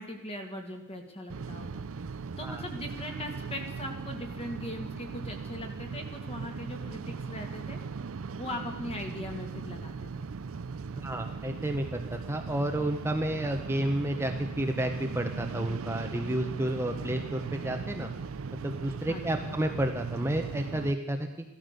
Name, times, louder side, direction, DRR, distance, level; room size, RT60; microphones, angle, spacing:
voice 1, 0.0-1.8 2.4-7.8 8.4-10.3 19.1-19.6, left 1 dB, 30° left, 3 dB, 2.3 m, -40 dB
sound 1, 1.3-20.9, right 5 dB, 65° right, 0.5 m, -38 dB
voice 2, 11.0-14.3 14.6-18.1 18.6-21.3, right 1 dB, 10° right, 5 dB, 0.9 m, -31 dB
15.0 x 13.0 x 6.8 m, 0.99 s
head